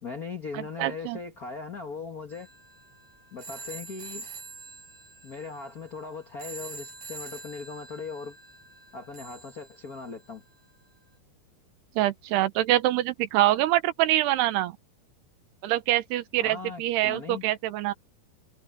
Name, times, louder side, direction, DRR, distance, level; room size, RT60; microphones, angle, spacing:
voice 1, 0.0-2.5 3.3-4.3 5.2-8.4 8.9-10.4 16.4-17.4, left 4 dB, 75° left, 0.8 m, -39 dB
voice 2, 0.5-1.2 12.0-14.8 15.6-17.9, right 15 dB, 90° right, 3.1 m, -25 dB
sound 1, 2.3-10.4, right 4 dB, 45° right, 6.5 m, -45 dB
omnidirectional pair, 4.6 m